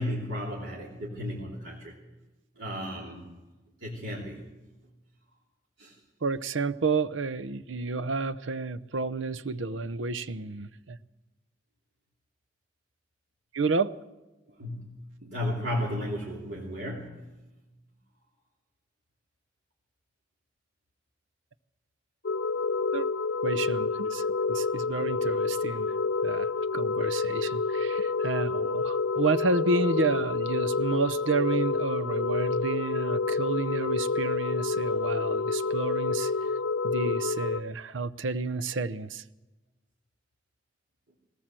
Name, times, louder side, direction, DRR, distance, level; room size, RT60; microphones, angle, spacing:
voice 1, 0.0-2.0 2.6-3.3 3.8-4.4 5.8-5.9 14.5-17.4, left 1 dB, 65° right, 3.4 m, -34 dB
voice 2, 6.2-11.0 13.5-13.9 22.9-23.1 23.4-25.9 26.2-36.3 36.8-39.2, right 3 dB, 85° right, 0.7 m, -30 dB
sound 1, 22.2-37.6, left 4 dB, 70° left, 0.7 m, -28 dB
20.0 x 18.5 x 7.6 m
head